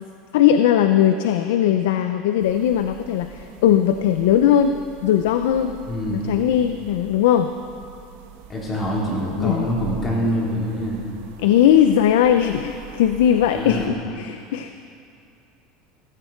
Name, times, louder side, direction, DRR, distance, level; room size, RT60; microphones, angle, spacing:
voice 1, 0.3-5.7 6.1-7.5 9.4-9.7 11.4-14.8, left 10 dB, 80° left, 8 dB, 0.6 m, -19 dB
sound 1, 2.4-13.9, right 7 dB, 80° right, 1.4 m, -42 dB
voice 2, 5.9-6.5 8.5-11.1 13.5-14.0, equal, 25° left, -5 dB, 4.2 m, -25 dB
17.5 x 15.0 x 4.5 m, 2.5 s
supercardioid pair, 145°, 0 cm